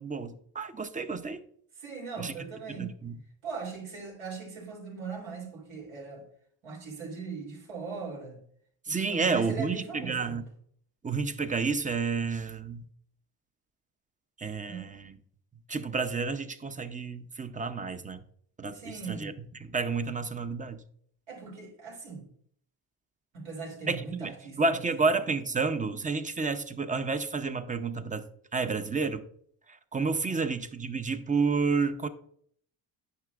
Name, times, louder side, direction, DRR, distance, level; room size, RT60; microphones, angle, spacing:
voice 1, 0.0-1.4 2.2-2.3 2.8-3.1 8.9-10.4 11.0-12.9 14.4-15.2 15.7-18.2 18.6-18.8 19.1-19.3 19.6-20.8 23.9-24.3 24.6-28.2 28.5-29.2 29.9-32.1, right 4 dB, 20° right, 0.5 m, -30 dB
voice 2, 1.7-2.9 3.4-6.2 6.6-8.4 8.9-10.4 14.7-14.9 18.7-19.3 21.3-22.3 23.3-25.1 30.2-30.4, right 5 dB, 85° right, 3.2 m, -40 dB
9.6 x 5.8 x 2.4 m
cardioid pair, 90°, 45 cm